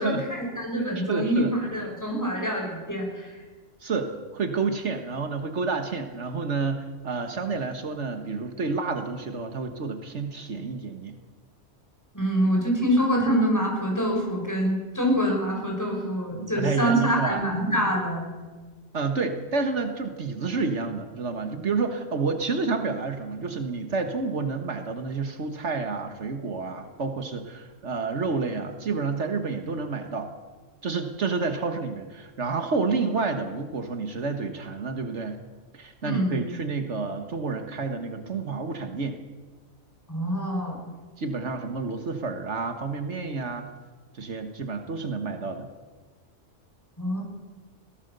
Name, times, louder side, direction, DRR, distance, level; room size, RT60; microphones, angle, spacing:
voice 1, 0.0-3.4 12.1-18.3 36.0-36.4 40.1-40.8 47.0-47.2, equal, 15° left, -1 dB, 6.1 m, -25 dB
voice 2, 1.0-1.5 1.8-1.9 3.8-11.2 16.3-17.4 18.9-30.3 30.8-35.4 35.7-39.2 41.2-43.7 44.1-45.7, right 4 dB, 75° right, 7 dB, 1.8 m, -29 dB
22.0 x 17.0 x 6.8 m, 1.4 s
omnidirectional pair, 1.2 m